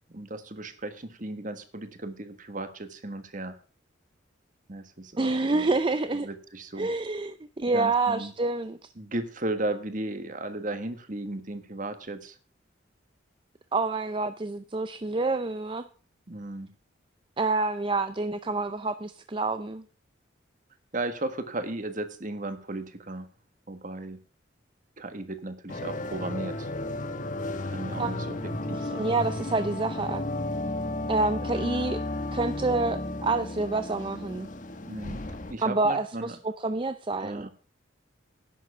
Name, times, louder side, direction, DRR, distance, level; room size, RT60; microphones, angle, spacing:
voice 1, 0.1-3.6 4.7-5.7 6.2-6.9 7.7-8.3 9.0-12.4 16.3-16.7 20.9-23.3 23.7-24.2 25.0-26.7 27.6-28.4 28.7-29.1 31.0-31.2 34.8-35.2 35.5-36.4 37.2-37.5, right 2 dB, 40° right, 9 dB, 1.5 m, -35 dB
voice 2, 5.2-6.3 6.8-8.9 13.7-15.9 17.4-19.8 28.0-28.4 28.7-30.2 31.1-32.0 32.3-34.5 35.6-37.5, right 3 dB, 25° right, 11 dB, 0.5 m, -28 dB
sound 1, 25.7-35.5, left 2 dB, 40° left, 1.1 m, -33 dB
11.0 x 7.5 x 6.8 m, 0.41 s
head